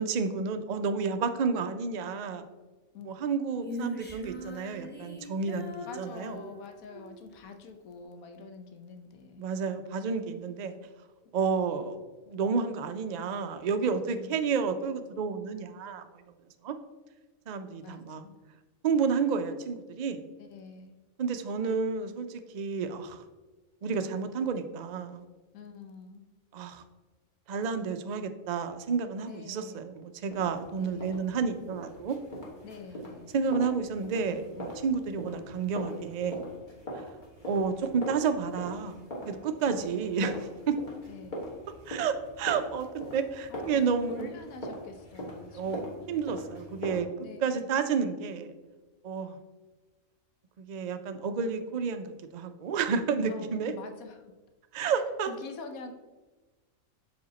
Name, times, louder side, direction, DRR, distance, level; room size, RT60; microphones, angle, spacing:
voice 1, 0.0-2.4 3.1-6.4 9.4-10.7 11.3-12.0 12.3-16.2 16.6-16.7 17.5-18.3 18.8-20.3 21.2-23.2 23.8-25.2 26.5-26.8 27.5-32.2 33.3-36.4 36.9-37.0 37.4-40.3 40.7-40.8 41.9-44.3 45.5-47.1 47.4-48.5 49.0-49.4 50.6-53.7 54.7-55.3, right 5 dB, 85° right, 8 dB, 0.3 m, -30 dB
Female singing, 3.6-7.2, equal, 10° left, 0.7 m, -41 dB
voice 2, 5.8-9.5 14.1-14.4 17.8-18.4 20.4-21.0 25.5-26.3 29.2-29.9 30.8-31.1 32.6-33.4 39.8-40.0 41.1-41.4 43.5-46.1 47.2-47.7 53.3-54.3 55.3-55.9, left 4 dB, 80° left, 6 dB, 1.2 m, -46 dB
sound 1, 30.3-47.0, equal, 35° left, 1.6 m, -42 dB
6.3 x 4.9 x 4.1 m, 1.2 s
omnidirectional pair, 1.5 m